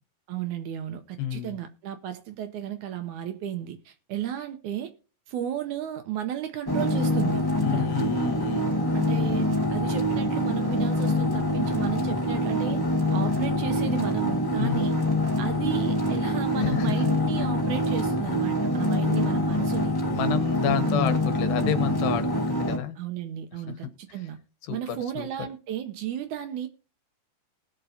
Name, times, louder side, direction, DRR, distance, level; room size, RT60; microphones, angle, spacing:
voice 1, 0.3-4.9 5.3-7.4 7.7-7.9 8.9-12.8 13.1-14.9 15.4-19.9 23.0-24.4 24.7-26.7, right 10 dB, 75° right, 2.0 m, -33 dB
voice 2, 1.2-1.6 7.6-8.7 14.6-15.0 16.6-17.1 17.4-17.5 20.1-23.0 23.5-24.2 24.6-25.3, left 10 dB, 85° left, 2.9 m, -30 dB
sound 1, 6.7-22.8, left 1 dB, 25° left, 0.4 m, -25 dB
19.5 x 6.7 x 2.7 m
omnidirectional pair, 4.0 m